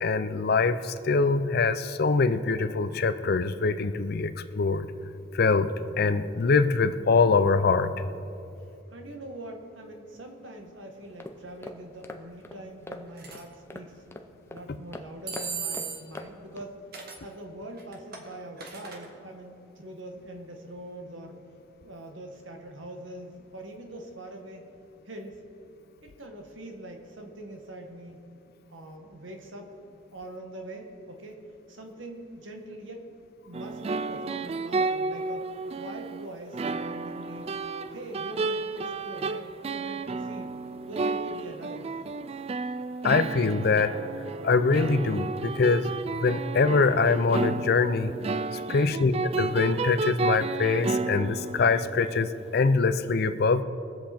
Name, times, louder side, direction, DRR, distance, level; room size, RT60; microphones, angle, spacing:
voice 1, 0.0-4.9 5.3-5.7 6.0-7.9 43.0-44.0 44.4-45.9 46.2-48.1 48.7-53.6, left 4 dB, 55° left, 12 dB, 0.5 m, -24 dB
voice 2, 8.9-14.1 14.5-16.8 17.2-21.4 21.8-24.7 25.0-25.4 26.0-28.2 28.7-29.7 30.1-31.4 31.7-33.2 33.4-37.5 37.9-40.5 40.9-41.9 48.7-49.1, right 1 dB, 75° right, 3 dB, 1.6 m, -43 dB
sound 1, 11.0-16.7, left 1 dB, 15° left, 0.6 m, -44 dB
sound 2, 13.2-13.4 15.3-16.2 16.9-17.2 17.8-19.1, right 5 dB, 50° right, 1.5 m, -36 dB
sound 3, 33.5-52.5, right 3 dB, 30° right, 0.3 m, -32 dB
21.5 x 7.8 x 4.4 m, 2.7 s
head